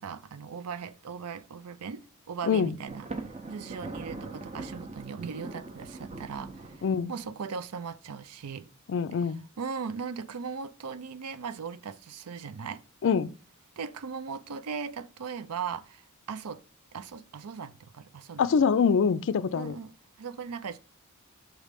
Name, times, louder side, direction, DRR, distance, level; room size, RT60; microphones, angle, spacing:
voice 1, 0.0-3.1 3.5-8.7 9.2-12.8 13.8-16.6 16.9-18.4 19.5-20.8, right 6 dB, 85° right, 0.5 m, -38 dB
Thunder, 2.9-7.4, right 3 dB, 30° right, 0.6 m, -41 dB
voice 2, 8.9-9.4 13.0-13.3 18.4-19.8, left 6 dB, 55° left, 0.4 m, -24 dB
6.3 x 3.1 x 5.0 m
head